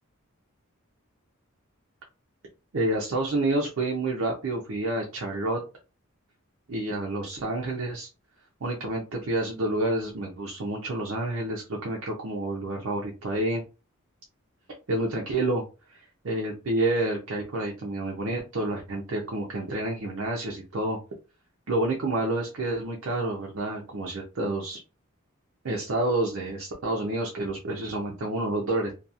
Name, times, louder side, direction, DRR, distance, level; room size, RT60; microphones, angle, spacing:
voice 1, 2.7-5.6 6.7-8.1 8.6-13.6 14.9-15.6 15.9-21.0 21.7-24.8 25.6-28.9, right 2 dB, 65° right, -1 dB, 0.6 m, -29 dB
2.8 x 2.2 x 2.4 m, 0.31 s
head